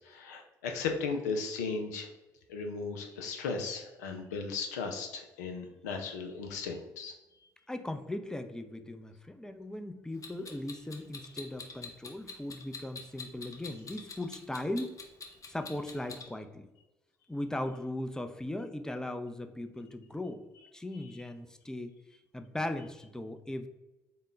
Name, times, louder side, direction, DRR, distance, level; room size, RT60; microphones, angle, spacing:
voice 1, 0.0-2.1 2.5-7.1 21.0-21.2, left 4 dB, 85° left, 4 dB, 0.4 m, -36 dB
voice 2, 7.7-15.0 15.5-16.7 17.3-20.4 20.7-21.9 22.3-23.7, left 1 dB, 5° left, 8 dB, 0.4 m, -38 dB
Clock, 10.2-16.2, left 4 dB, 40° left, 0.8 m, -45 dB
3.6 x 2.2 x 3.8 m, 1.0 s
hypercardioid pair, 50°, 9 cm